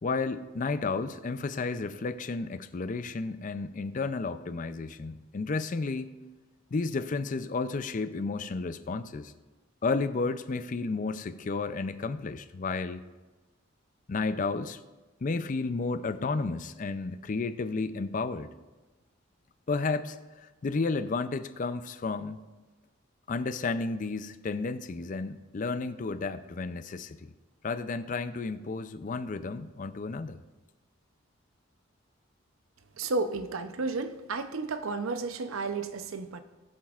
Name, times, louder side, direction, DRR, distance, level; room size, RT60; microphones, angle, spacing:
voice 1, 0.0-6.1 6.7-9.3 9.8-13.0 14.1-14.8 15.2-18.5 19.7-22.4 23.3-27.3 27.6-30.4, left 4 dB, 40° left, 0.4 m, -32 dB
voice 2, 33.0-36.4, right 3 dB, 90° right, 0.6 m, -32 dB
20.0 x 7.3 x 2.4 m
head